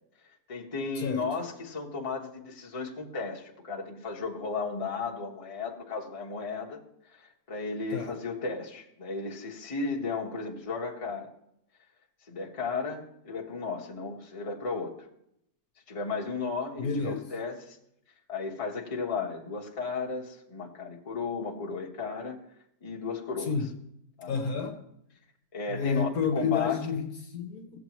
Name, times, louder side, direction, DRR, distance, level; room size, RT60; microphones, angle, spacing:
voice 1, 0.5-6.8 7.1-11.3 12.3-14.9 15.9-17.8 18.3-22.4 22.8-23.6 24.2-24.4 25.5-26.8, left 4 dB, 25° left, -2 dB, 1.1 m, -34 dB
voice 2, 16.8-17.2 23.5-23.7 24.3-24.8 25.7-27.8, left 5 dB, 65° left, 5 dB, 1.3 m, -30 dB
16.5 x 7.5 x 3.1 m, 0.76 s
omnidirectional pair, 1.8 m